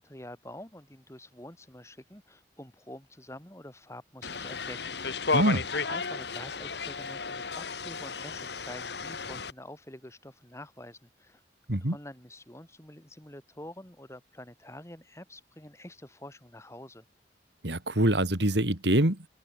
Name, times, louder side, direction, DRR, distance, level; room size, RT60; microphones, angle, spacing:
voice 1, 0.0-5.4 5.8-11.4 11.7-17.0, left 1 dB, 15° left, 6.6 m, -47 dB
sound 1, 4.2-9.5, left 4 dB, 75° left, 2.1 m, -33 dB
voice 2, 5.3-5.6 11.7-12.0 17.6-19.3, right 1 dB, 80° right, 3.1 m, -25 dB
open air
head